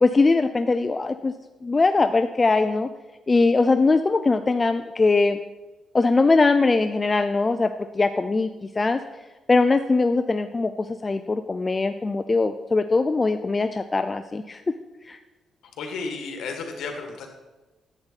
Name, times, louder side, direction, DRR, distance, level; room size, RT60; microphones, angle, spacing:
voice 1, 0.0-1.3 1.6-2.9 3.3-5.4 5.9-9.0 9.5-14.6 15.1-15.2, left 3 dB, 20° left, 8 dB, 0.3 m, -21 dB
voice 2, 15.6-17.3, left 4 dB, 85° left, 3 dB, 1.7 m, -33 dB
10.5 x 7.9 x 4.1 m, 1.1 s
cardioid pair, 140°, 0 cm